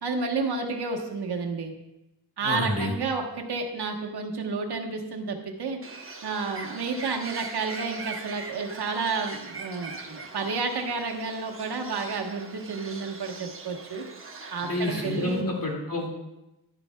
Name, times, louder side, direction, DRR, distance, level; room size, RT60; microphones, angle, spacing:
voice 1, 0.0-1.7 2.4-5.8 6.2-14.0 14.5-15.4, right 4 dB, 70° right, 1 dB, 1.3 m, -31 dB
voice 2, 2.4-2.9 14.6-16.1, left 1 dB, 55° left, -1 dB, 2.3 m, -29 dB
Bird, 5.8-15.4, right 3 dB, 30° right, 1.0 m, -41 dB
11.5 x 11.0 x 2.3 m, 0.92 s
wide cardioid pair, 160°, 40 cm